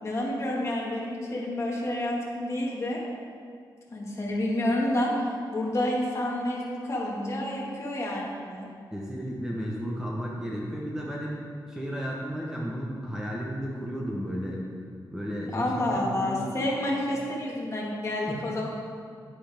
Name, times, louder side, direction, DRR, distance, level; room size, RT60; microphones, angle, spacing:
voice 1, 0.0-3.0 3.9-5.1 5.5-8.7 15.5-18.7, left 1 dB, 35° left, -3 dB, 1.9 m, -29 dB
voice 2, 8.9-11.3 11.6-14.6 15.1-16.5, equal, 5° right, -4 dB, 1.1 m, -33 dB
10.5 x 10.0 x 3.6 m, 2.2 s
wide cardioid pair, 170°, 8 cm